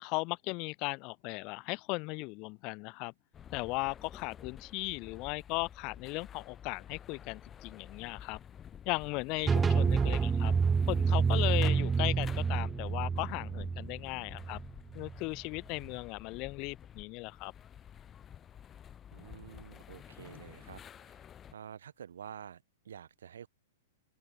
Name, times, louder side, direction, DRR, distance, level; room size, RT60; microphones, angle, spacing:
voice 1, 0.0-3.1 3.5-8.4 8.9-10.5 10.9-14.6 14.9-17.5, left 27 dB, 35° left, 0.5 m, -37 dB
sound 1, 3.3-21.5, left 9 dB, 20° left, 1.2 m, -51 dB
sound 2, 9.5-15.2, right 5 dB, 15° right, 0.3 m, -28 dB
voice 2, 19.1-23.5, right 8 dB, 60° right, 3.3 m, -49 dB
open air
figure-of-eight pair, 105°, 0 cm